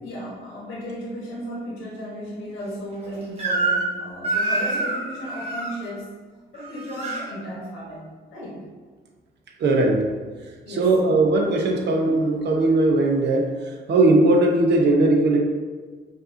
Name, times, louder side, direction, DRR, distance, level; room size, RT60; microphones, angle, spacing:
voice 1, 0.0-6.1 6.5-8.0 8.3-8.6 10.6-11.0, equal, 90° left, -5 dB, 1.2 m, -35 dB
Crying sobbing / Screech, 3.4-3.9 4.2-5.7 6.5-7.2, right 2 dB, 30° right, 1.2 m, -25 dB
voice 2, 9.6-10.1 10.7-13.5 13.9-15.4, right 2 dB, 60° right, 1 dB, 0.8 m, -19 dB
5.2 x 2.6 x 2.7 m, 1.5 s
cardioid pair, 90°, 20 cm